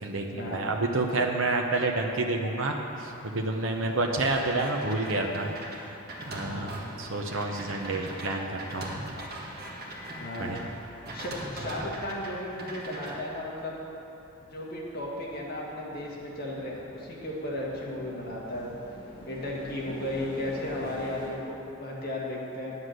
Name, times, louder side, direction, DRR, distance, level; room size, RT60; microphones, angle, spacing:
voice 1, 0.0-5.5 6.2-9.0 10.4-10.6, right 2 dB, 65° right, 1 dB, 0.9 m, -29 dB
sound 1, 2.9-21.3, equal, 25° left, 2.9 m, -49 dB
sound 2, 4.2-10.6 11.1-12.3 12.6-13.2, right 1 dB, 45° right, 1.6 m, -40 dB
voice 2, 6.4-6.7 10.2-10.6 11.1-13.8 14.5-18.7 19.3-22.8, left 1 dB, 45° left, -4 dB, 1.8 m, -35 dB
9.7 x 9.4 x 6.5 m, 2.9 s
head